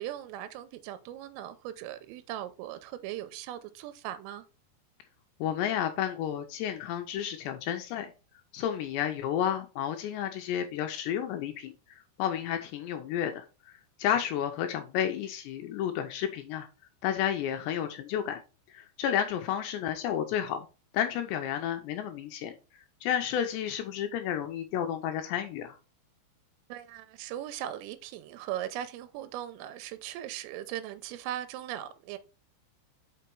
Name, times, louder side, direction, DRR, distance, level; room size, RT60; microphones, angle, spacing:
voice 1, 0.0-4.5 26.7-32.2, right 12 dB, 90° right, 3.4 m, -39 dB
voice 2, 5.4-8.1 8.5-16.7 17.0-18.4 18.7-20.7 20.9-22.5 23.0-25.8, left 9 dB, 85° left, 2.5 m, -31 dB
5.9 x 5.7 x 4.5 m
omnidirectional pair, 5.7 m